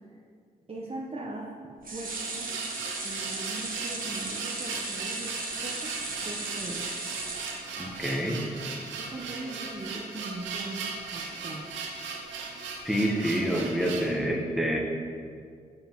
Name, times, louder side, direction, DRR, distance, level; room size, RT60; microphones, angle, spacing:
voice 1, 0.7-1.5 1.9-2.5 3.0-5.3 5.6-5.9 6.2-6.8 9.0-11.6, right 2 dB, 30° right, -3 dB, 1.0 m, -40 dB
sound 1, 1.8-8.2 8.6-8.7 9.0-9.1, right 3 dB, 50° right, 1.3 m, -36 dB
sound 2, 1.8-14.1, right 4 dB, 85° right, 0.7 m, -38 dB
voice 2, 7.8-8.4 12.8-14.8, equal, ahead, -1 dB, 1.2 m, -27 dB
7.1 x 6.9 x 3.0 m, 2.3 s
supercardioid pair, 40°, 19 cm